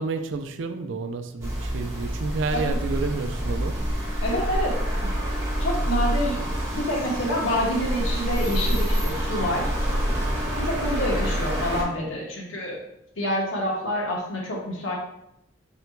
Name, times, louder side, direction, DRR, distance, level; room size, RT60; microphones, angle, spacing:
voice 1, 0.0-3.8, right 4 dB, 70° right, 8 dB, 0.4 m, -30 dB
sound 1, 1.4-11.8, equal, 15° right, 1.1 m, -27 dB
voice 2, 4.2-5.1 5.6-6.4 6.7-9.7 10.6-12.8 13.2-15.0, equal, 80° left, -2 dB, 1.1 m, -27 dB
3.9 x 2.2 x 4.4 m, 0.81 s
head